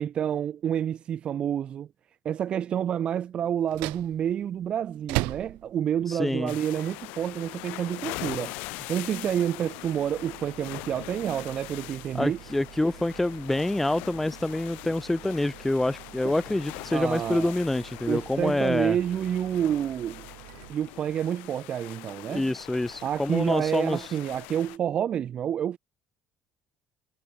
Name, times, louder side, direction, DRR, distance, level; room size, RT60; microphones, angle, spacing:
voice 1, 0.0-1.9 2.2-12.4 16.2-16.3 16.9-17.5 18.1-20.2 20.7-22.5 23.0-25.8, right 9 dB, 50° right, 2.4 m, -29 dB
sound 1, 3.6-21.4, right 28 dB, 90° right, 5.9 m, -42 dB
voice 2, 6.1-6.5 12.1-19.0 22.3-24.1, left 1 dB, 10° left, 1.2 m, -27 dB
sound 2, 6.5-24.8, left 26 dB, 85° left, 1.2 m, -42 dB
cardioid pair, 100°, 2 cm